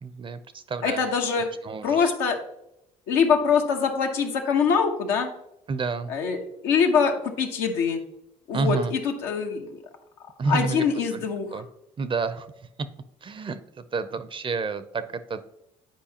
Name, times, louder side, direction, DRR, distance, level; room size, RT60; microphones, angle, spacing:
voice 1, 0.0-2.1 5.7-6.1 8.5-8.9 10.4-11.7 12.0-12.7 13.2-15.4, right 4 dB, 35° right, 13 dB, 0.5 m, -30 dB
voice 2, 0.8-1.5 1.8-2.4 3.1-5.3 6.1-8.0 8.5-9.8 10.5-11.6, left 6 dB, 85° left, 2 dB, 1.0 m, -24 dB
9.0 x 4.7 x 2.8 m, 0.81 s
supercardioid pair, 65°, 16 cm